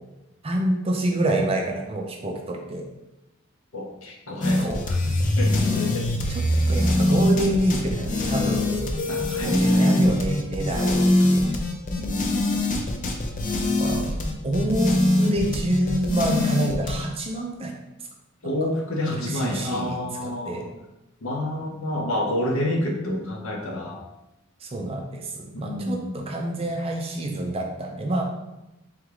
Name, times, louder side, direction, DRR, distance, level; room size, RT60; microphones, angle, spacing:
voice 1, 0.4-2.9 4.3-4.8 5.5-5.8 6.3-8.8 9.4-11.4 13.8-14.0 14.4-17.7 18.4-18.7 19.2-20.7 24.6-28.2, right 1 dB, 30° right, 2 dB, 0.5 m, -27 dB
voice 2, 3.7-5.0 5.3-6.1 9.1-10.0 10.8-11.6 12.0-12.5 18.4-20.7 21.2-24.0 25.5-26.1, left 1 dB, 70° left, 0 dB, 0.8 m, -29 dB
sound 1, 4.4-17.0, left 1 dB, 40° left, 0.5 m, -23 dB
3.5 x 3.5 x 3.3 m, 0.95 s
head